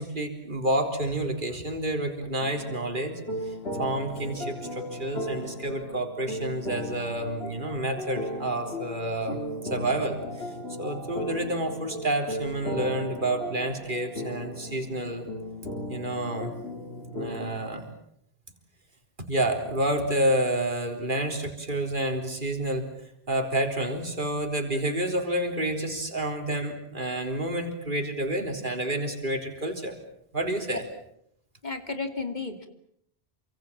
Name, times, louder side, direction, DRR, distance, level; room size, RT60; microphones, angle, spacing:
voice 1, 0.0-3.1 3.4-10.5 10.8-15.2 15.9-16.5 17.1-17.8 19.3-22.9 23.3-30.0 30.3-30.8, right 1 dB, 55° right, 4 dB, 4.1 m, -29 dB
sound 1, 2.4-17.6, equal, 80° left, 3.9 m, -36 dB
voice 2, 31.6-32.7, left 4 dB, 45° left, 7 dB, 2.9 m, -33 dB
28.5 x 25.0 x 7.5 m, 0.72 s
omnidirectional pair, 1.0 m